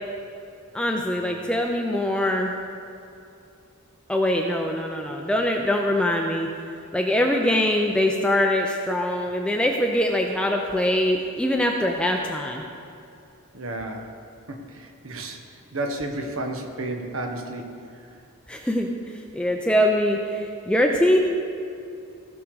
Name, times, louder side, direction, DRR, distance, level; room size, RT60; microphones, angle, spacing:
voice 1, 0.7-2.5 4.1-6.5 6.9-12.6 18.5-18.9 19.3-21.2, left 1 dB, 5° left, 1 dB, 0.5 m, -23 dB
voice 2, 13.5-14.1 14.5-15.4 15.7-18.1, right 2 dB, 70° right, 4 dB, 1.2 m, -32 dB
17.0 x 6.4 x 4.7 m, 2.6 s
head